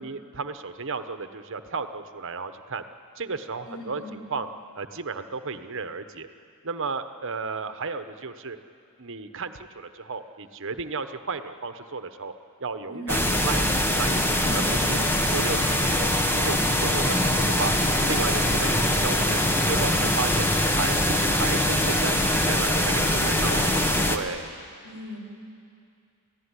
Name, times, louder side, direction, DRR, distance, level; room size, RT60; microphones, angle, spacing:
voice 1, 0.0-2.8 3.2-4.5 4.7-6.3 6.6-8.6 9.0-12.3 12.6-15.0 15.3-17.7 18.0-19.4 19.7-22.2 22.4-23.8 24.1-24.5, right 4 dB, 60° right, 9 dB, 1.1 m, -33 dB
voice 2, 3.7-4.1 12.9-13.4 23.0-24.1 24.8-25.2, left 1 dB, 75° left, 0 dB, 5.9 m, -38 dB
sound 1, 13.1-24.2, left 1 dB, 10° left, 1.3 m, -23 dB
29.5 x 15.5 x 9.9 m, 2.4 s
head